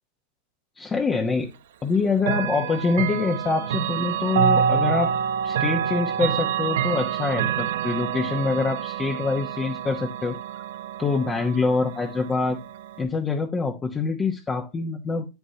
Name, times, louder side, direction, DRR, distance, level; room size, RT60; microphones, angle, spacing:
voice 1, 0.8-1.5 1.8-5.2 5.4-10.6 11.0-12.6 13.0-15.2, left 4 dB, 20° left, 2 dB, 1.0 m, -25 dB
Chime / Clock, 2.2-13.0, right 8 dB, 85° right, 0.8 m, -27 dB
8.5 x 8.1 x 2.8 m, 0.26 s
supercardioid pair, 130°, 0 cm